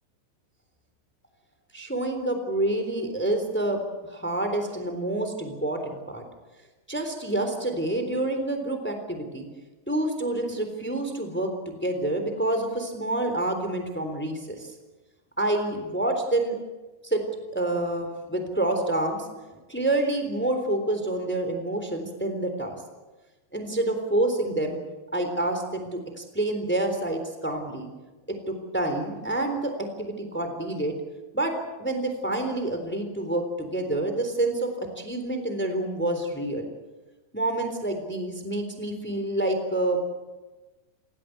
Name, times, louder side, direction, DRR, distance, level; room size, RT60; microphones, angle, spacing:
voice 1, 1.7-6.2 6.9-9.5 9.9-14.7 15.4-16.6 17.0-17.2 17.5-19.3 19.7-22.8 23.5-24.8 25.1-27.9 28.5-31.0 31.3-36.7 37.3-40.0, right 1 dB, 5° left, 6 dB, 2.5 m, -28 dB
29.0 x 17.0 x 8.1 m, 1.2 s
omnidirectional pair, 5.2 m